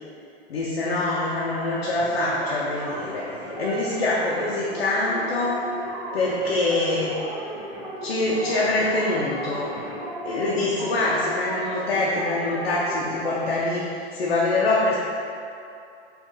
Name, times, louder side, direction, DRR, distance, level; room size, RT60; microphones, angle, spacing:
voice 1, 0.5-3.3 3.6-5.6 6.1-7.1 8.0-9.7 10.2-15.0, left 2 dB, 80° left, -6 dB, 0.6 m, -24 dB
sound 1, 1.3-13.6, right 1 dB, ahead, 1.5 m, -35 dB
4.4 x 2.5 x 3.1 m, 2.5 s
hypercardioid pair, 100°, 30 cm